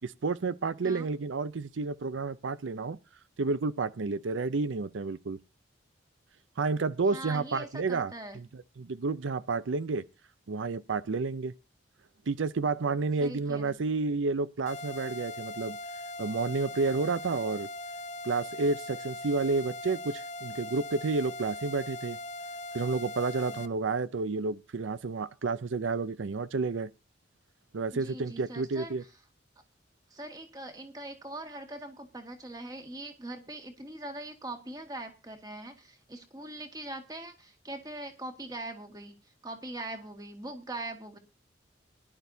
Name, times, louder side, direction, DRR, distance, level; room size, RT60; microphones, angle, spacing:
voice 1, 0.0-3.0 3.4-5.4 6.6-10.0 10.5-11.5 12.3-15.8 16.2-17.7 18.2-22.2 22.7-26.9 27.7-29.0, right 4 dB, 90° right, 0.6 m, -30 dB
voice 2, 7.1-8.4 13.2-13.8 23.5-23.7 27.9-28.9 30.1-39.2 39.4-41.2, right 1 dB, 20° right, 1.9 m, -42 dB
sound 1, 14.7-23.7, left 2 dB, 40° left, 0.8 m, -40 dB
19.5 x 11.5 x 2.7 m
head